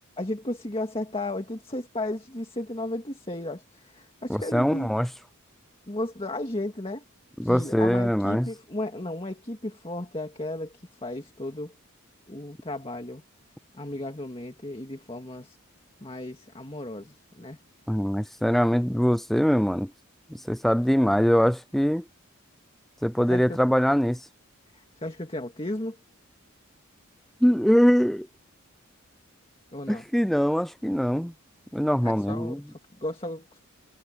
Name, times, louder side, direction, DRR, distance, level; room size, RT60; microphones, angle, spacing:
voice 1, 0.2-5.0 5.9-7.0 7.4-11.7 12.3-13.2 13.7-15.6 16.0-17.6 23.3-23.6 24.7-26.0 29.7-30.0 32.0-32.6 33.0-33.6, left 1 dB, 25° left, 2.0 m, -34 dB
voice 2, 4.3-5.1 7.4-8.5 17.9-19.9 20.3-22.0 23.0-24.2 27.4-28.3 29.9-31.3 31.7-32.6, equal, ahead, 0.4 m, -23 dB
head